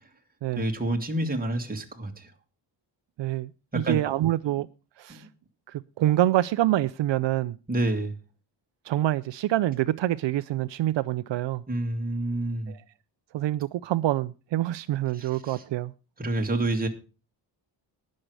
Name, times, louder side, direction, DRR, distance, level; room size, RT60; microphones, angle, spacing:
voice 1, 0.6-2.3 3.7-4.0 5.1-5.3 7.7-8.2 11.7-12.7 15.1-15.6 16.2-16.9, right 1 dB, 20° right, 2.1 m, -28 dB
voice 2, 3.2-4.7 5.0-5.3 5.7-7.6 8.8-11.6 12.7-12.8 13.3-15.9, right 14 dB, 70° right, 0.6 m, -26 dB
19.0 x 6.6 x 4.7 m
wide cardioid pair, 125°, 45 cm